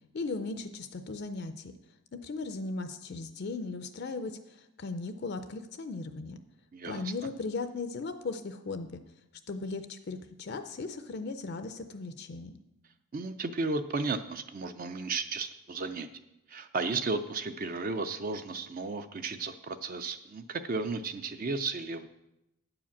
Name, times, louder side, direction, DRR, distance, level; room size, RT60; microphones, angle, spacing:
voice 1, 0.1-1.7 2.1-6.4 6.8-9.0 9.5-12.6, left 3 dB, 50° left, 9 dB, 0.4 m, -37 dB
voice 2, 6.7-7.1 13.1-16.1 16.5-22.1, right 3 dB, 40° right, 9 dB, 0.4 m, -34 dB
9.1 x 4.9 x 7.1 m, 0.89 s
head